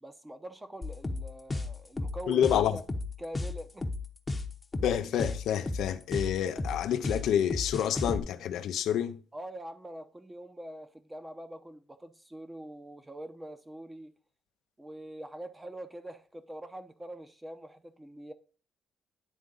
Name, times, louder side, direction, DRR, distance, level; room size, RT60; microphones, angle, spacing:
voice 1, 0.0-2.8 3.2-3.9 9.3-14.1 14.8-18.3, right 1 dB, 15° right, 0.8 m, -44 dB
sound 1, 0.8-8.2, left 2 dB, 20° left, 0.8 m, -33 dB
voice 2, 2.3-2.8 4.8-9.2, left 9 dB, 80° left, 0.5 m, -28 dB
10.0 x 3.6 x 3.8 m
cardioid pair, 90°, 0 cm